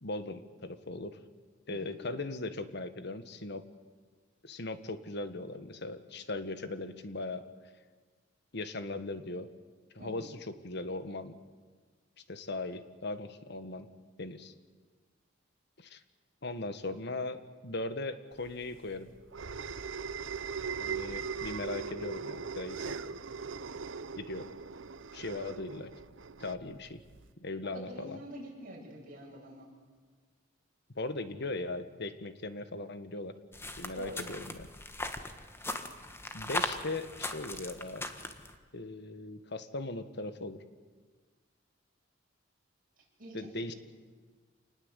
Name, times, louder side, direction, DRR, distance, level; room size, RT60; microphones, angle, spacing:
voice 1, 0.0-1.2 1.7-3.7 4.4-7.4 8.5-9.5 9.9-11.3 12.3-13.9 14.2-14.5 15.8-16.0 16.4-19.1 20.8-23.0 24.2-24.5 25.1-25.9 26.4-27.0 27.4-28.2 30.9-33.4 33.8-34.7 36.3-38.0 38.7-40.6 43.3-43.7, left 2 dB, 60° left, 11 dB, 1.5 m, -39 dB
sound 1, 18.5-27.3, right 5 dB, 80° right, 0.8 m, -40 dB
voice 2, 27.7-29.7 33.9-34.3 43.2-43.6, equal, 50° right, -2 dB, 8.0 m, -46 dB
sound 2, 33.5-38.5, left 2 dB, 15° left, 1.5 m, -39 dB
27.5 x 20.0 x 8.3 m, 1.5 s
head